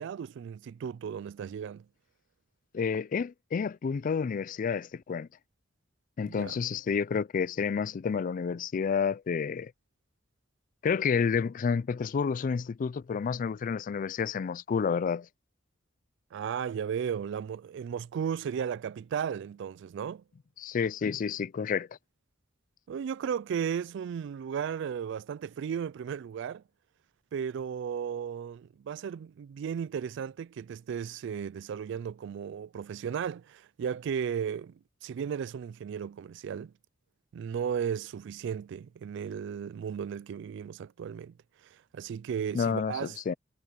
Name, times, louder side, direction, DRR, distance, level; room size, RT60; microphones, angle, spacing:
voice 1, 0.0-1.9 6.3-6.6 16.3-20.2 22.9-26.6 27.3-36.7 37.3-41.3 41.7-43.2, right 7 dB, 65° right, 0.3 m, -35 dB
voice 2, 2.7-5.3 6.2-9.7 10.8-15.3 20.6-21.9 42.5-43.3, left 6 dB, 45° left, 0.3 m, -30 dB
head